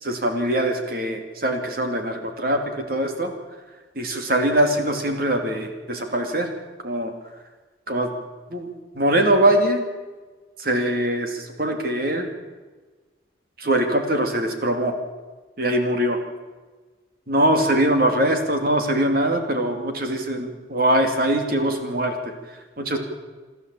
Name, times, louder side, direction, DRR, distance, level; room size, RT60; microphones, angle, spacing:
voice 1, 0.0-3.3 4.0-6.5 6.8-7.1 7.9-8.1 8.5-8.7 8.9-9.9 10.6-12.3 13.6-15.0 15.6-16.2 17.3-22.2 22.8-23.0, right 1 dB, 50° right, 5 dB, 2.7 m, -22 dB
28.5 x 12.0 x 8.4 m, 1.3 s
head